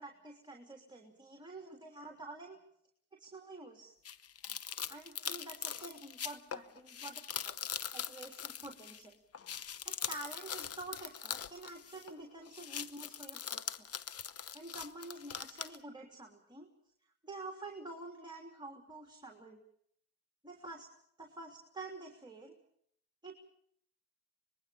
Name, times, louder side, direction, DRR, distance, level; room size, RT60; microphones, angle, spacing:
voice 1, 0.0-2.6 3.2-3.9 4.9-7.6 7.9-9.2 9.8-13.9 14.5-16.7 17.2-19.6 20.4-20.9 21.2-22.6 23.2-23.3, right 2 dB, 15° right, 2 dB, 3.3 m, -48 dB
sound 1, 4.0-9.1 9.3-12.2 12.5-15.8, left 8 dB, 50° left, 1.0 m, -42 dB
25.5 x 21.0 x 7.0 m, 0.68 s
cardioid pair, 90°, 30 cm